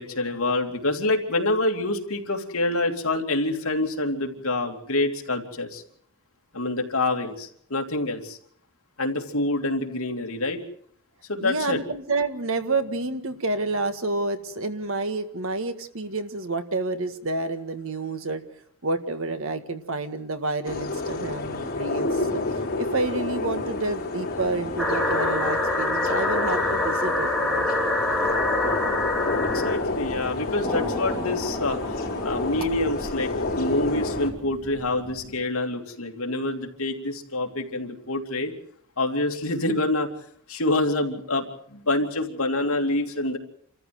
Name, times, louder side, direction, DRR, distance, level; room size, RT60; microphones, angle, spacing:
voice 1, 0.0-5.8 6.5-8.4 9.0-10.6 11.3-11.8 29.5-31.8 32.2-38.5 39.0-40.1 40.5-43.4, left 2 dB, 70° left, 3 dB, 2.9 m, -26 dB
voice 2, 11.4-18.4 18.8-22.2 22.8-27.7, right 2 dB, 65° right, 9 dB, 1.8 m, -29 dB
sound 1, 20.6-34.3, left 2 dB, 40° left, 4.8 m, -29 dB
sound 2, 24.8-29.8 30.6-33.1, left 2 dB, ahead, 2.4 m, -26 dB
sound 3, 28.0-35.4, right 1 dB, 40° right, 5.4 m, -44 dB
28.0 x 14.0 x 7.8 m, 0.64 s
head